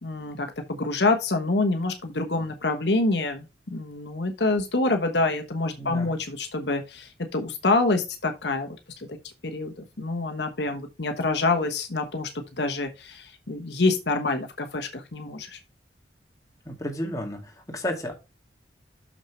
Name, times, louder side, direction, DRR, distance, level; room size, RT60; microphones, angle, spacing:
voice 1, 0.0-9.2 9.4-15.6, left 3 dB, 70° left, 1.2 m, -26 dB
voice 2, 5.8-6.1 16.7-18.1, equal, 20° left, 2.1 m, -32 dB
6.5 x 6.2 x 4.3 m
head